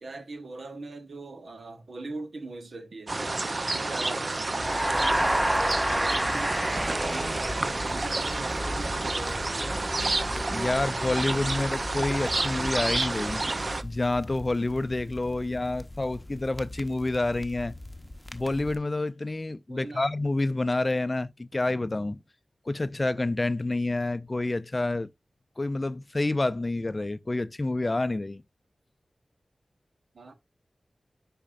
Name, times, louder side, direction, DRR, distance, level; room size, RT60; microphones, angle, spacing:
voice 1, 0.0-3.1 3.7-9.8 19.7-20.1 30.1-30.3, right 3 dB, 75° right, 1.2 m, -41 dB
sound 1, 3.1-13.8, right 2 dB, 45° right, 0.6 m, -30 dB
sound 2, 4.5-8.3, right 1 dB, 15° right, 0.8 m, -28 dB
sound 3, 4.6-18.8, left 1 dB, 15° left, 0.9 m, -40 dB
voice 2, 10.5-13.4 13.8-17.7 18.3-22.2 22.7-25.1 25.6-28.4, left 2 dB, 40° left, 0.4 m, -28 dB
9.9 x 4.3 x 2.5 m
cardioid pair, 50°, 0 cm